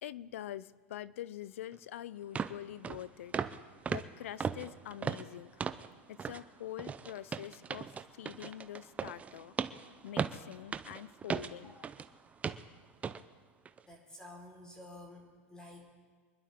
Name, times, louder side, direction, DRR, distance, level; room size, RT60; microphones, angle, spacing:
voice 1, 0.0-3.3 3.9-5.6 6.1-9.6 10.0-11.7, left 12 dB, 80° left, 19 dB, 0.6 m, -45 dB
sound 1, 1.7-1.8 2.4-2.6 2.8-3.0 3.3-3.6 3.9-5.9 6.2-6.4 6.8-12.1 12.4-12.7 13.0-13.2 13.7-13.8, right 6 dB, 20° right, 0.6 m, -37 dB
voice 2, 13.9-15.9, left 1 dB, 10° left, -1 dB, 4.6 m, -51 dB
26.0 x 11.5 x 3.7 m, 1.5 s
supercardioid pair, 120°, 7 cm